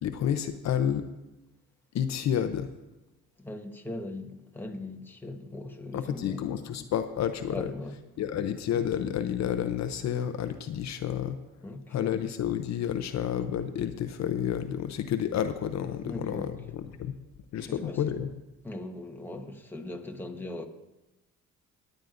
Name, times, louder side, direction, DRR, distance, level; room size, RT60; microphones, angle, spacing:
voice 1, 0.0-1.1 1.9-2.7 5.9-7.7 8.2-11.4 11.9-17.1 17.5-18.3, left 9 dB, 65° left, 0.7 m, -30 dB
voice 2, 3.4-6.4 7.5-7.9 11.6-12.2 16.0-16.5 17.6-18.0 18.6-20.7, left 2 dB, 5° left, 1.2 m, -39 dB
23.0 x 9.1 x 2.6 m
cardioid pair, 90°, 30 cm